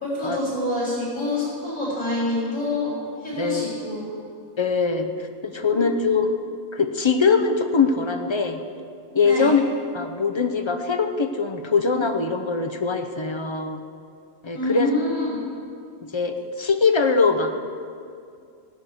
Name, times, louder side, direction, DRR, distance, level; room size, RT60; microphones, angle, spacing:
voice 1, 0.0-2.9 3.2-4.1 5.6-5.9 9.3-9.5 14.5-15.4, left 2 dB, 80° left, -8 dB, 3.9 m, -26 dB
voice 2, 3.3-3.6 4.6-5.1 5.4-6.3 6.7-8.6 9.1-9.6 9.9-13.8 14.4-14.9 16.0-17.5, left 4 dB, 30° left, 5 dB, 0.5 m, -22 dB
17.5 x 6.0 x 7.9 m, 2.4 s
omnidirectional pair, 1.4 m